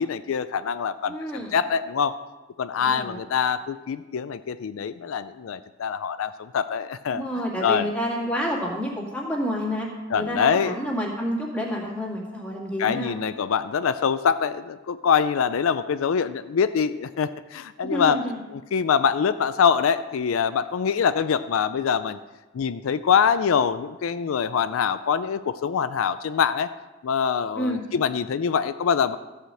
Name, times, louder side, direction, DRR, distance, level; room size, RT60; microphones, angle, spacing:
voice 1, 0.0-2.2 2.6-7.2 7.6-7.9 10.1-10.8 12.8-18.2 18.5-22.2 22.5-26.7 27.0-29.2, left 7 dB, 85° left, 13 dB, 0.4 m, -24 dB
voice 2, 1.1-1.5 2.8-3.2 7.1-9.9 10.1-13.1 17.8-18.4 27.6-27.8, equal, 5° left, -3 dB, 2.3 m, -29 dB
13.0 x 5.0 x 7.6 m, 1.2 s
head